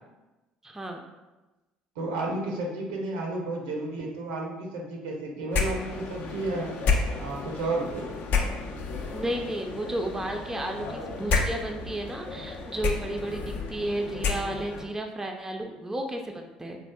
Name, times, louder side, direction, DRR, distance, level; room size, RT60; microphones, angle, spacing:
voice 1, 0.6-1.1 9.1-16.8, right 1 dB, 15° right, 3 dB, 0.4 m, -33 dB
voice 2, 2.0-6.7 7.2-8.1, right 2 dB, 75° right, 0 dB, 0.6 m, -32 dB
sound 1, 5.5-14.9, left 4 dB, 55° left, 0.4 m, -31 dB
3.3 x 2.4 x 2.2 m, 1.1 s
hypercardioid pair, 60°, 3 cm